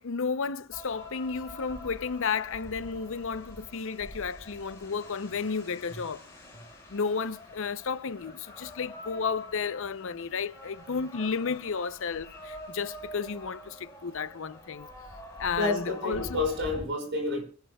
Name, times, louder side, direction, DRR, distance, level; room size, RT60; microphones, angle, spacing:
voice 1, 0.0-6.2 6.9-14.9 15.4-16.4, left 5 dB, 65° left, 0.6 m, -32 dB
sound 1, 0.7-16.8, left 1 dB, 10° left, 5.1 m, -46 dB
voice 2, 15.6-17.4, left 2 dB, 55° right, 5.2 m, -29 dB
26.5 x 10.5 x 2.3 m
head